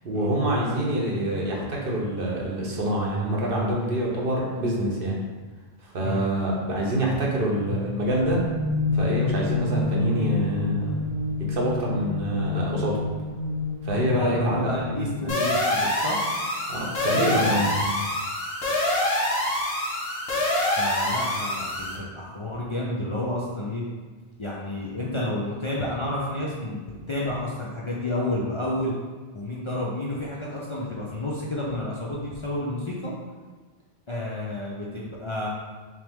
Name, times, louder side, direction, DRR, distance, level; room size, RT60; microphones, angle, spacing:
voice 1, 0.0-5.2 5.8-8.4 8.9-11.0 11.4-13.0 13.8-15.4 16.7-17.8, right 1 dB, 65° right, -3 dB, 1.0 m, -26 dB
sound 1, 7.7-15.4, left 3 dB, 45° right, 0.6 m, -28 dB
voice 2, 14.1-16.2 19.4-19.5 20.7-23.8 24.4-28.9 29.3-33.1 34.1-35.5, left 1 dB, 40° left, -5 dB, 0.5 m, -30 dB
sound 2, 15.3-22.0, left 1 dB, 75° left, 1.3 m, -25 dB
5.8 x 2.0 x 3.5 m, 1.3 s
omnidirectional pair, 1.0 m